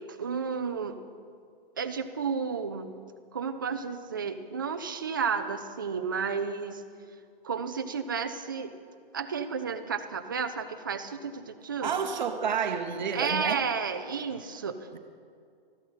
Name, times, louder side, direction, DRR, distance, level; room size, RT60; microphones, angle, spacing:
voice 1, 0.1-1.0 1.8-3.0 3.3-6.8 7.4-8.7 9.1-12.0 13.1-15.0, right 6 dB, 25° right, 8 dB, 0.3 m, -32 dB
voice 2, 11.8-13.6 14.9-15.0, right 6 dB, 50° right, 6 dB, 0.9 m, -30 dB
14.0 x 11.5 x 5.7 m, 2.3 s
hypercardioid pair, 160°, 29 cm